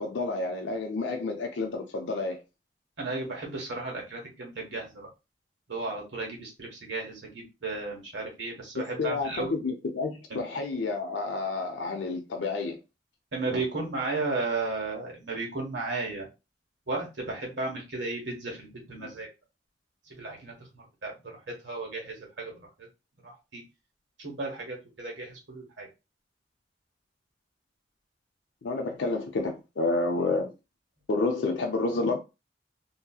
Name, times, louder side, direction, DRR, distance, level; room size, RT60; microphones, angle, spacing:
voice 1, 0.0-2.4 9.0-12.8 19.0-19.1 28.6-30.5 31.1-32.2, left 3 dB, 85° left, 0.5 m, -29 dB
voice 2, 3.0-5.1 5.7-9.6 10.3-10.4 13.3-16.3 16.9-19.3 20.2-21.2 21.6-22.5 22.8-22.9 23.2-23.6 24.2-25.9, right 3 dB, 80° right, 1.3 m, -34 dB
2.7 x 2.7 x 2.3 m
head